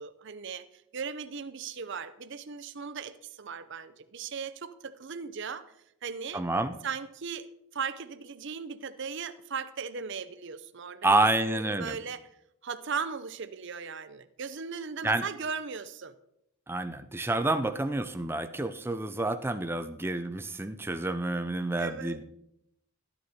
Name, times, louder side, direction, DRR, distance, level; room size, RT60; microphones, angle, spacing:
voice 1, 0.0-5.7 6.0-6.4 6.8-12.3 12.6-16.1 21.8-22.2, right 6 dB, 55° right, 13 dB, 0.6 m, -38 dB
voice 2, 6.3-6.8 11.0-12.0 15.0-15.2 16.7-22.2, right 2 dB, 10° right, 8 dB, 0.5 m, -28 dB
13.0 x 9.4 x 4.2 m, 0.78 s
head